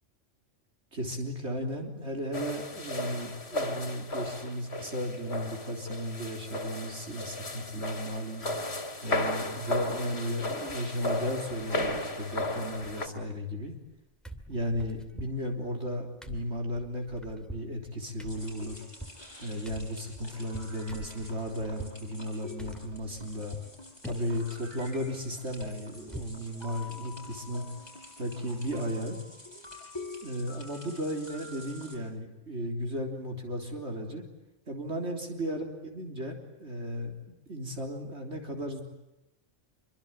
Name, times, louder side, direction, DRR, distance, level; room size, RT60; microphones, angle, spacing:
voice 1, 0.9-8.4 9.0-13.7 14.5-18.8 19.4-23.6 24.1-27.7 28.2-29.2 30.2-34.2 34.7-38.8, equal, 60° right, 3 dB, 3.9 m, -35 dB
sound 1, 2.3-13.1, left 1 dB, 55° left, 3.2 m, -35 dB
sound 2, 10.0-10.8 11.1-11.2 11.5-12.3 12.6-14.0 14.2-22.0 22.6-23.7 24.0-24.5 24.8-26.4 26.8-26.9 27.2-27.4, equal, ahead, 2.6 m, -46 dB
sound 3, 18.3-32.0, left 2 dB, 20° left, 8.0 m, -47 dB
27.0 x 24.5 x 8.9 m, 0.94 s
omnidirectional pair, 1.3 m